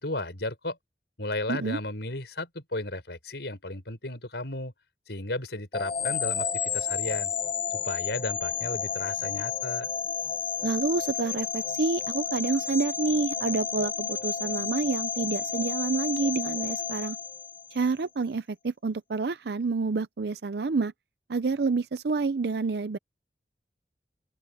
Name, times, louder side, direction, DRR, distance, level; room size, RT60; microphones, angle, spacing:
voice 1, 0.0-0.8 1.2-4.7 5.1-7.3 7.7-9.9, left 2 dB, 70° left, 4.9 m, -34 dB
voice 2, 1.5-1.8 10.6-17.2 17.7-20.9 21.3-23.0, right 4 dB, 65° right, 0.5 m, -28 dB
sound 1, 5.7-17.9, left 7 dB, 30° left, 0.5 m, -31 dB
open air
head